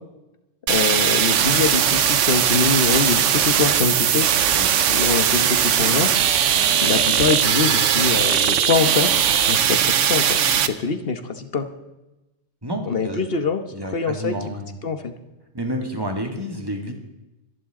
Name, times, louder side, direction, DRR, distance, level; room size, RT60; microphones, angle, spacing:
voice 1, 0.7-4.3 4.9-6.1 6.8-9.1 9.5-11.7 12.9-13.6 13.9-14.4 14.8-15.1, left 5 dB, 50° left, 8 dB, 1.3 m, -24 dB
sound 1, 0.7-10.7, right 9 dB, 80° right, 1.1 m, -19 dB
voice 2, 12.6-13.3 13.7-14.7 15.5-16.9, equal, 20° right, 2 dB, 2.2 m, -29 dB
25.5 x 11.0 x 3.8 m, 1.0 s
omnidirectional pair, 1.3 m